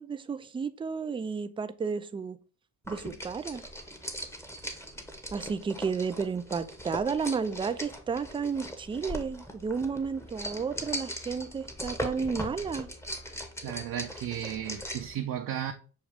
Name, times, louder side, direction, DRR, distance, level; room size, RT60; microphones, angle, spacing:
voice 1, 0.0-2.4 2.9-3.6 5.3-12.9, right 5 dB, 15° right, 0.3 m, -32 dB
sound 1, 2.8-15.2, equal, 5° left, 0.8 m, -39 dB
voice 2, 13.6-15.7, right 10 dB, 55° right, 0.6 m, -34 dB
6.4 x 2.3 x 3.4 m
supercardioid pair, 60°, 40 cm